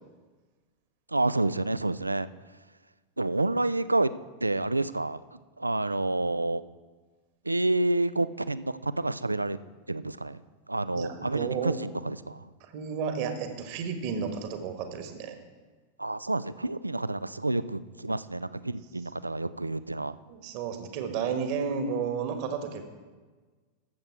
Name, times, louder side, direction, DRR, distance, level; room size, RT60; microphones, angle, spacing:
voice 1, 1.1-2.3 3.2-4.1 4.4-6.6 7.5-9.6 9.9-10.4 10.7-12.4 16.0-20.2, right 2 dB, 85° right, 16 dB, 0.3 m, -29 dB
voice 2, 10.9-11.8 12.6-15.4 20.3-22.8, right 6 dB, 45° right, 7 dB, 1.4 m, -32 dB
13.0 x 7.7 x 4.6 m, 1.4 s
figure-of-eight pair, 90°, 0 cm